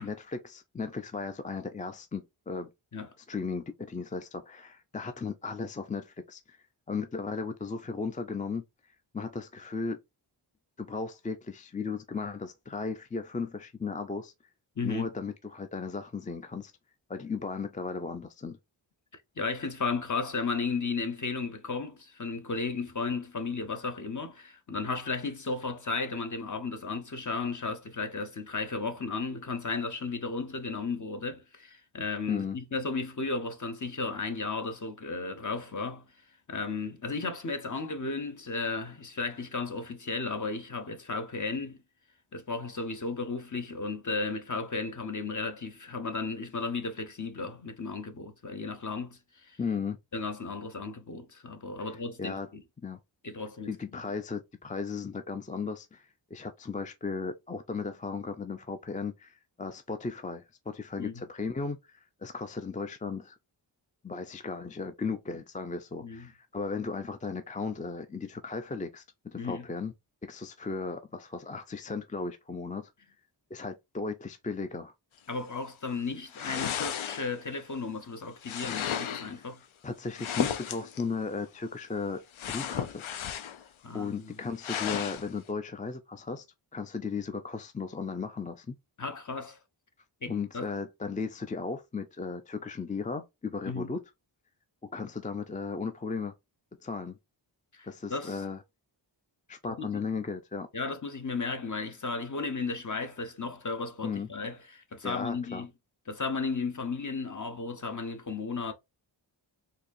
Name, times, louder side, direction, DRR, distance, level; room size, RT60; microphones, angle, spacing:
voice 1, 0.0-2.7 3.3-6.6 6.9-8.6 9.1-10.0 10.8-14.3 14.8-16.7 17.1-18.6 32.3-32.6 49.6-50.0 51.8-51.9 52.2-52.5 52.8-53.0 53.7-63.4 64.0-69.9 70.2-72.9 73.5-74.9 79.8-83.0 83.9-86.4 86.7-88.8 90.3-94.0 94.8-96.3 96.8-97.2 97.8-98.6 99.5-100.7 104.0-104.3 105.0-105.6, left 4 dB, 20° left, 0.3 m, -36 dB
voice 2, 14.8-15.1 19.1-36.1 36.5-41.8 42.3-49.6 50.1-52.6 53.2-53.8 61.0-61.2 66.0-66.3 69.4-69.7 75.3-79.6 83.8-84.4 89.0-89.6 90.2-90.7 93.7-93.9 97.7-98.4 99.6-100.0 100.7-105.7 106.1-108.7, left 4 dB, 40° left, 0.8 m, -34 dB
sound 1, 76.3-77.5 78.4-79.3 80.1-81.0 82.4-83.7 84.0-84.1 84.6-85.3, left 9 dB, 85° left, 0.6 m, -34 dB
4.1 x 2.7 x 2.5 m
wide cardioid pair, 75°, 47 cm